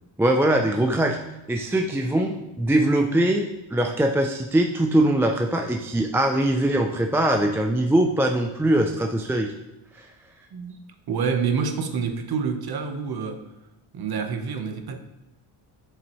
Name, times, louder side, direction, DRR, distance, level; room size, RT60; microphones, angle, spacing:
voice 1, 0.2-1.2 1.5-9.5, right 1 dB, 5° right, 3 dB, 0.4 m, -22 dB
voice 2, 11.1-13.5 13.9-15.0, right 5 dB, 50° right, 6 dB, 1.1 m, -27 dB
8.3 x 7.6 x 3.1 m, 0.99 s
cardioid pair, 110°, 48 cm